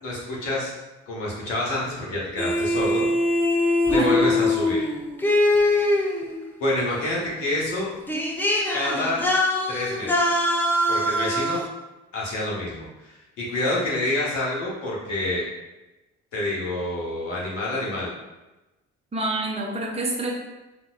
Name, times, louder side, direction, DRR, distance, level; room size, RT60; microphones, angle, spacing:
voice 1, 0.0-0.7 1.1-3.1 3.9-4.8 6.6-7.9 8.7-9.2 9.7-10.4 10.9-11.7 12.1-15.5 16.3-18.1, left 1 dB, 75° left, -5 dB, 0.8 m, -27 dB
sound 1, 2.4-6.5 7.7-7.8 8.1-11.7, left 1 dB, 5° left, 0.3 m, -22 dB
voice 2, 19.1-20.3, right 2 dB, 15° right, -1 dB, 0.8 m, -27 dB
5.3 x 2.2 x 2.2 m, 1.1 s
figure-of-eight pair, 45°, 37 cm